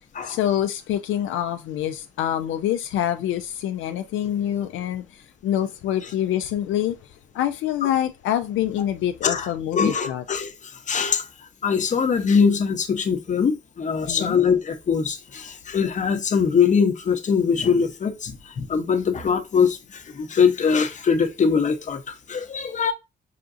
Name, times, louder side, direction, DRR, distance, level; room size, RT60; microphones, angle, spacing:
voice 1, 0.2-7.0 7.3-10.2 14.1-14.4, left 11 dB, 80° left, 0.4 m, -26 dB
voice 2, 9.7-11.3 11.6-22.9, left 6 dB, 40° left, 0.8 m, -22 dB
5.7 x 2.5 x 2.5 m
cardioid pair, 90°, 20 cm